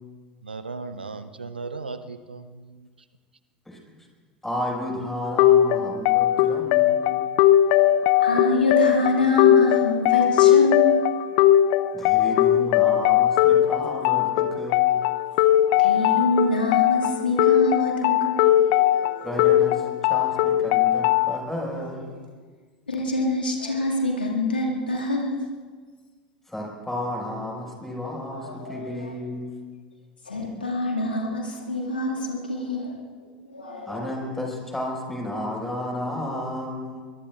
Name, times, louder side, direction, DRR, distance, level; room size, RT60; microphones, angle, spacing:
voice 1, 0.4-2.9, right 4 dB, 85° right, 11 dB, 0.7 m, -36 dB
voice 2, 4.4-7.3 11.9-14.9 19.2-22.2 26.5-29.5 30.6-30.7 33.9-37.0, left 1 dB, 5° left, -1 dB, 5.9 m, -32 dB
sound 1, 5.4-21.4, left 12 dB, 50° left, 0.7 m, -19 dB
voice 3, 8.2-11.0 15.8-19.3 22.9-25.5 28.4-29.1 30.3-32.9 33.2-34.3, left 2 dB, 85° left, -1 dB, 2.3 m, -26 dB
24.5 x 22.0 x 2.5 m, 1.5 s
figure-of-eight pair, 85°, 5 cm